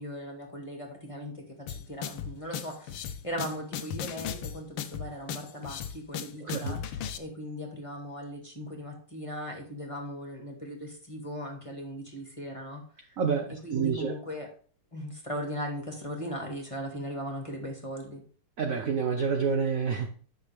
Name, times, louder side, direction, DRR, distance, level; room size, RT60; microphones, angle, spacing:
voice 1, 0.0-13.2 13.5-14.5 14.9-18.2, equal, 15° left, 1 dB, 1.7 m, -38 dB
sound 1, 1.7-7.2, left 8 dB, 80° left, 1.7 m, -36 dB
voice 2, 6.4-6.8 13.2-14.1 18.6-20.1, right 6 dB, 60° right, 5 dB, 0.9 m, -28 dB
10.5 x 6.2 x 3.4 m, 0.43 s
omnidirectional pair, 2.4 m